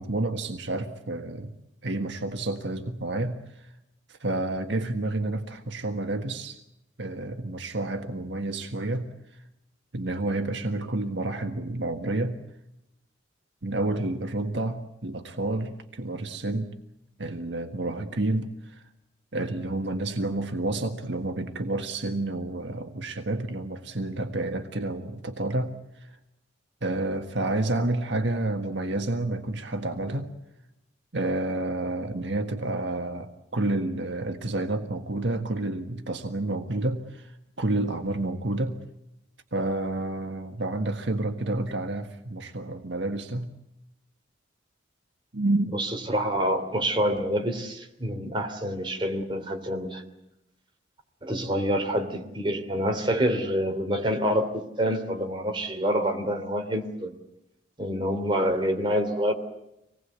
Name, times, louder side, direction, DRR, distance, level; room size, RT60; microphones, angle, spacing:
voice 1, 0.0-1.5 1.8-3.7 4.1-6.6 7.0-9.1 9.9-12.4 13.6-16.7 17.2-18.8 19.3-25.7 26.0-26.1 26.8-30.3 31.1-38.8 39.5-43.5 45.3-45.8, right 2 dB, 65° right, 5 dB, 1.6 m, -29 dB
voice 2, 45.7-50.0 51.2-57.1 57.8-59.3, equal, 25° right, 3 dB, 3.1 m, -27 dB
26.5 x 19.5 x 8.2 m, 0.88 s
head